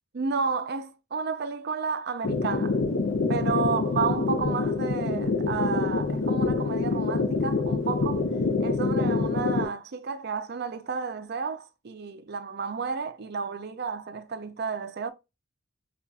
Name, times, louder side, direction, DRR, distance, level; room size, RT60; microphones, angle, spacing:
voice 1, 0.1-2.8 3.3-8.3 8.6-15.1, right 5 dB, 50° right, 0.5 m, -31 dB
sound 1, 2.2-9.6, left 3 dB, 60° left, 0.5 m, -26 dB
5.3 x 2.4 x 2.3 m
head